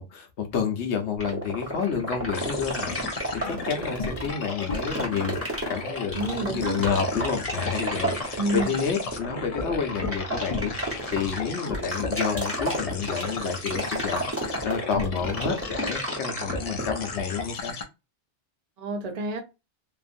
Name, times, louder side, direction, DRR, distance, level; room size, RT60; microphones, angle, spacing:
voice 1, 0.0-17.8, left 6 dB, 70° left, 1.0 m, -30 dB
sound 1, 1.2-17.1, right 1 dB, 10° right, 1.0 m, -31 dB
sound 2, 2.3-17.8, left 4 dB, 55° left, 0.4 m, -35 dB
voice 2, 6.1-6.8 8.4-8.8 18.8-19.4, right 2 dB, 40° right, 0.7 m, -29 dB
2.9 x 2.4 x 2.5 m
omnidirectional pair, 1.2 m